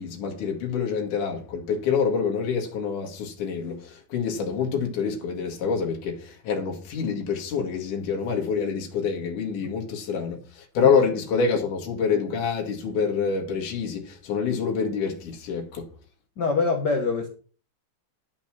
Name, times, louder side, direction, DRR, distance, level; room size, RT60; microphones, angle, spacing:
voice 1, 0.0-15.9, left 6 dB, 75° left, 3.4 m, -26 dB
voice 2, 16.4-17.3, left 4 dB, 50° left, 1.4 m, -24 dB
12.0 x 5.6 x 6.0 m
omnidirectional pair, 3.6 m